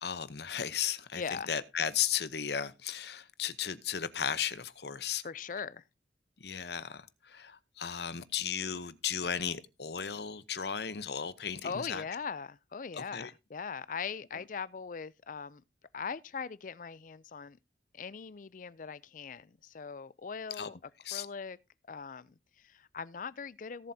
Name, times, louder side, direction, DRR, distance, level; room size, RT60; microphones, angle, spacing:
voice 1, 0.0-5.2 6.4-12.0 13.0-13.3 20.5-20.7 21.0-21.3, left 8 dB, 65° left, 0.8 m, -35 dB
voice 2, 1.2-1.5 5.2-5.8 11.6-15.6 15.9-17.6 17.9-20.8 21.1-21.6 21.9-23.9, left 6 dB, 50° left, 0.5 m, -40 dB
18.0 x 7.5 x 2.8 m
head